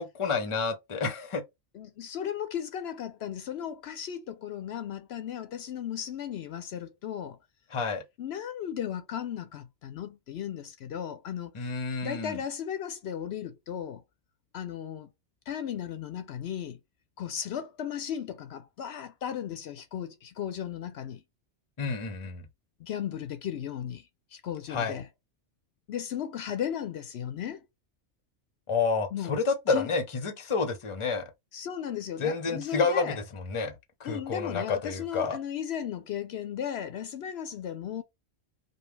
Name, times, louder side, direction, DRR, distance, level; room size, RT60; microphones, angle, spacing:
voice 1, 0.0-1.4 7.7-8.0 11.5-12.4 21.8-22.4 24.7-25.0 28.7-31.3 32.2-33.7 34.0-35.4, left 4 dB, 30° left, 0.8 m, -29 dB
voice 2, 1.7-7.4 8.2-11.7 12.0-14.0 14.5-15.1 15.5-16.8 17.2-21.2 22.8-24.0 24.3-25.1 25.9-27.6 29.1-29.3 29.7-29.9 31.5-33.2 34.0-38.0, left 9 dB, 75° left, 0.8 m, -35 dB
5.0 x 2.3 x 3.2 m
omnidirectional pair, 1.1 m